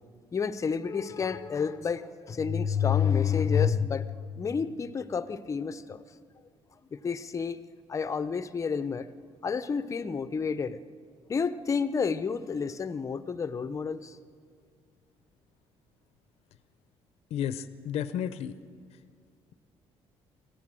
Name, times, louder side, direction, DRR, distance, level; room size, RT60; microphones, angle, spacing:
voice 1, 0.3-6.0 6.9-7.6 7.9-9.1 9.4-10.8 11.3-14.2, left 6 dB, 30° left, 13 dB, 0.8 m, -29 dB
voice 2, 17.3-18.5, left 9 dB, 70° left, 13 dB, 0.7 m, -32 dB
24.5 x 15.5 x 7.6 m, 2.1 s
cardioid pair, 130°, 11 cm